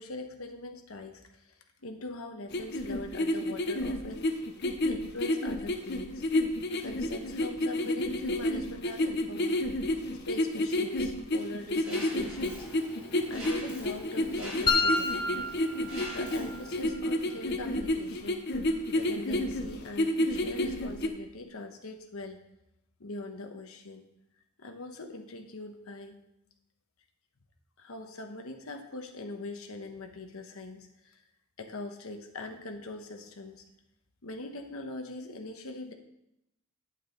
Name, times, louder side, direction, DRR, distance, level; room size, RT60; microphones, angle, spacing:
voice 1, 0.0-4.3 4.8-6.2 6.8-9.6 10.3-12.7 13.3-15.5 16.1-18.4 18.9-22.4 23.0-24.1 24.6-26.2 27.8-31.2 31.6-33.6 34.2-35.9, left 2 dB, 90° left, 5 dB, 1.1 m, -42 dB
sound 1, 2.5-21.1, left 1 dB, 50° left, 0.8 m, -30 dB
Mechanisms, 11.8-16.9, equal, 5° right, 2.4 m, -45 dB
sound 2, 14.7-16.7, left 3 dB, 20° left, 0.6 m, -29 dB
9.4 x 8.6 x 3.9 m, 0.83 s
head